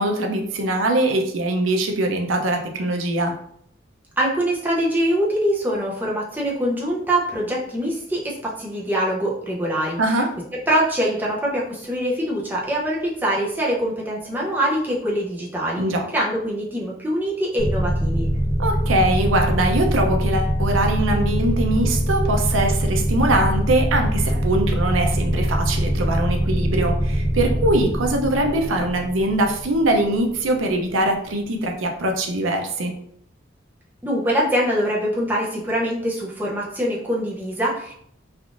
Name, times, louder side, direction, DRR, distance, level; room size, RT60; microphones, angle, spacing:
voice 1, 0.0-3.3 10.0-10.3 15.8-16.0 18.6-32.9, right 1 dB, 85° right, 3 dB, 0.5 m, -22 dB
voice 2, 4.2-10.0 10.5-15.8 16.1-18.3 34.0-37.9, equal, 10° right, -4 dB, 0.5 m, -23 dB
sound 1, 17.6-30.8, equal, 40° left, 0.7 m, -23 dB
3.3 x 2.4 x 2.4 m, 0.67 s
head